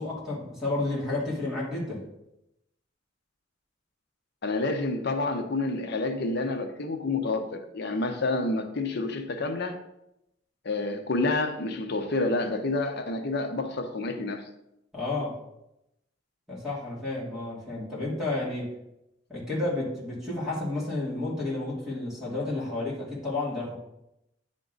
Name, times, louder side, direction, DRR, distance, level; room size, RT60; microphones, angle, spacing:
voice 1, 0.0-2.0 14.9-15.4 16.5-18.7 19.3-23.8, left 2 dB, 5° right, -7 dB, 2.7 m, -31 dB
voice 2, 4.4-9.8 10.6-14.5, left 2 dB, 60° left, 6 dB, 0.7 m, -29 dB
10.5 x 3.7 x 3.8 m, 0.84 s
head